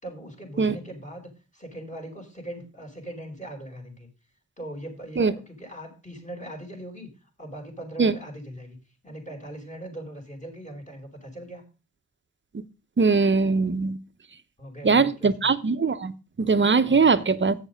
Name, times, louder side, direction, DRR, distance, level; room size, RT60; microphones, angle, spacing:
voice 1, 0.0-4.1 4.6-11.6 14.6-15.5 16.9-17.3, right 1 dB, 20° left, 3 dB, 4.6 m, -40 dB
voice 2, 13.0-14.0 14.8-17.5, right 4 dB, 35° right, 13 dB, 0.9 m, -21 dB
8.2 x 7.2 x 5.2 m, 0.33 s
cardioid pair, 60°, 33 cm